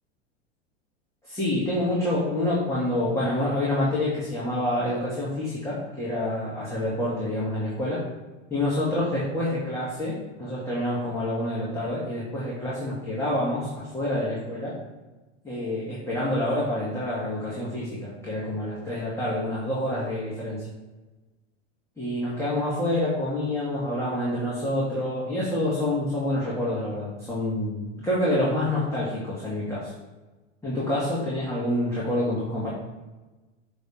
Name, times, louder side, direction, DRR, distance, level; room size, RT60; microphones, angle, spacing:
voice 1, 1.2-8.0 8.5-14.8 15.4-20.7 22.0-29.9 30.6-32.7, left 1 dB, 10° left, -9 dB, 2.4 m, -27 dB
7.6 x 3.5 x 5.6 m, 1.2 s
hypercardioid pair, 105°, 36 cm